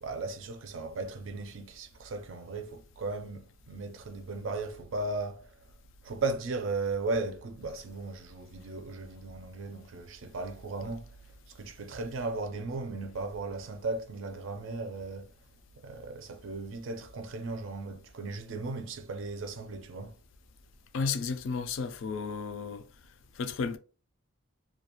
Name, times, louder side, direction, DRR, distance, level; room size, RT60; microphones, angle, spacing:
voice 1, 0.0-5.5 6.0-11.1 11.5-15.3 15.8-20.1, right 3 dB, 60° right, 0.4 m, -36 dB
voice 2, 20.9-22.9 23.4-23.8, left 5 dB, 60° left, 0.3 m, -33 dB
2.3 x 2.2 x 2.9 m
head